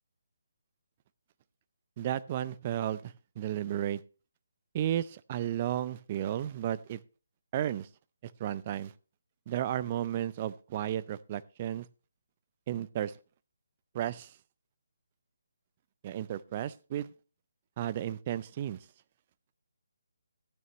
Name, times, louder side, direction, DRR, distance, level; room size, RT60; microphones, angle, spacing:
voice 1, 2.0-4.0 4.7-7.0 7.5-7.9 8.2-8.9 9.5-11.9 12.7-13.1 13.9-14.3 16.0-17.1 17.8-18.8, right 11 dB, 30° right, 0.5 m, -33 dB
14.0 x 9.4 x 3.1 m
figure-of-eight pair, 150°, 0 cm